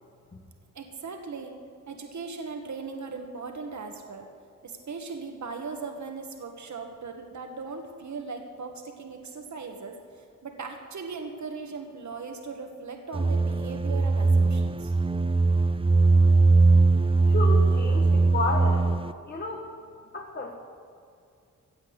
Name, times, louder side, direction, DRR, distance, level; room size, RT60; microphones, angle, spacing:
voice 1, 0.7-1.5 1.9-4.3 4.6-14.9, right 4 dB, 60° right, 4 dB, 1.5 m, -38 dB
sound 1, 13.1-19.1, right 3 dB, 15° right, 0.6 m, -21 dB
voice 2, 17.3-18.9 19.3-19.7 20.1-20.5, left 3 dB, 30° left, -1 dB, 1.7 m, -31 dB
15.5 x 8.3 x 8.1 m, 2.4 s
cardioid pair, 75°, 33 cm